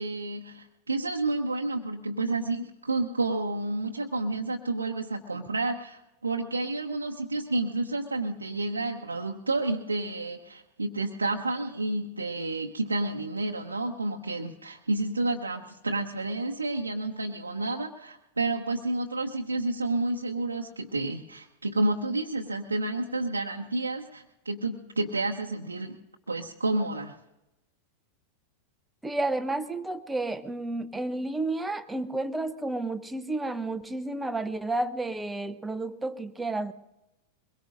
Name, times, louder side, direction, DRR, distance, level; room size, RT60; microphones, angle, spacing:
voice 1, 0.0-26.0 26.3-27.1, right 2 dB, 80° right, 0 dB, 1.0 m, -30 dB
voice 2, 29.0-36.7, right 2 dB, 5° right, 9 dB, 0.9 m, -31 dB
23.0 x 22.0 x 2.6 m, 0.96 s
figure-of-eight pair, 90°, 0 cm